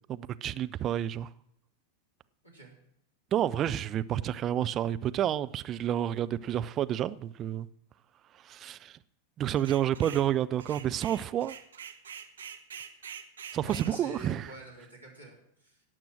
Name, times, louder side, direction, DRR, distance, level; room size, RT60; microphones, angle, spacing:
voice 1, 0.1-1.3 3.3-7.7 8.4-9.0 9.4-11.5 13.5-14.5, right 11 dB, 30° right, 0.4 m, -30 dB
voice 2, 2.4-2.7 13.6-15.8, right 2 dB, 90° right, 4.0 m, -47 dB
sound 1, 9.6-10.3 10.6-13.9, right 7 dB, 65° right, 0.9 m, -45 dB
17.5 x 6.1 x 6.3 m
figure-of-eight pair, 90°, 0 cm